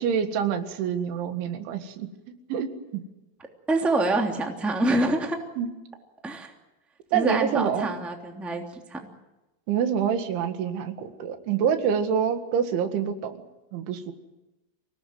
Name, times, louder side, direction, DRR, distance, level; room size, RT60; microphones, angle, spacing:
voice 1, 0.0-2.1 2.5-3.0 5.6-5.7 7.1-7.9 9.7-13.4 13.7-14.1, right 7 dB, 90° right, 7 dB, 4.3 m, -26 dB
voice 2, 3.7-5.4 6.2-6.5 7.1-9.0, right 2 dB, ahead, 2 dB, 1.8 m, -26 dB
26.5 x 18.5 x 9.4 m, 1.0 s
omnidirectional pair, 5.3 m